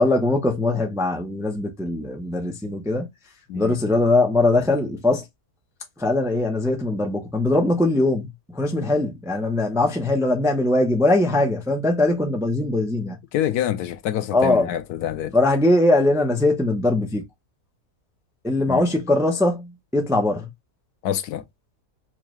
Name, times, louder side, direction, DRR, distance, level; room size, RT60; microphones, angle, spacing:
voice 1, 0.0-3.1 3.5-5.3 6.0-13.2 14.3-14.7 15.3-17.2 18.4-20.5, left 2 dB, 5° right, 0.4 m, -21 dB
voice 2, 3.5-3.8 8.7-8.9 13.3-15.3 18.7-18.9 21.0-21.4, left 11 dB, 85° left, 1.1 m, -26 dB
4.6 x 2.3 x 3.0 m
omnidirectional pair, 1.6 m